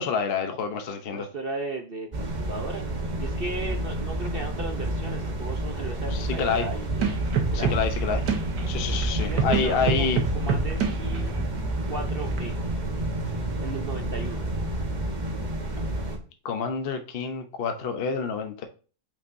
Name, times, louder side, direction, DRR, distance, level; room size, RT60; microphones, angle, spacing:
voice 1, 0.0-1.3 6.1-6.7 7.5-8.2 8.7-10.2 16.4-18.7, left 5 dB, 50° left, 0.7 m, -28 dB
voice 2, 1.1-7.0 7.5-7.8 9.3-10.1 10.3-11.3 11.9-12.6 13.6-14.5, right 3 dB, 50° right, 0.7 m, -36 dB
sound 1, 2.1-16.2, right 1 dB, 30° right, 1.1 m, -30 dB
sound 2, 6.9-12.6, right 4 dB, 80° right, 1.8 m, -28 dB
sound 3, 10.8-15.6, right 4 dB, 5° left, 1.5 m, -42 dB
8.3 x 5.2 x 2.6 m
omnidirectional pair, 1.8 m